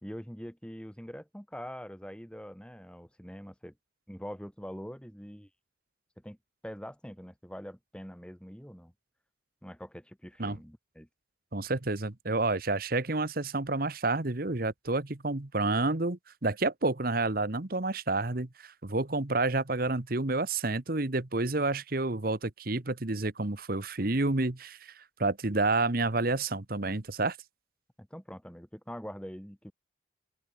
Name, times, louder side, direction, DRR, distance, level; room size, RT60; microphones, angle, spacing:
voice 1, 0.0-3.7 4.1-5.5 6.2-6.4 6.6-8.9 9.6-11.1 28.0-29.7, equal, 5° left, 2.7 m, -44 dB
voice 2, 11.5-27.4, right 2 dB, 50° right, 1.3 m, -29 dB
open air
head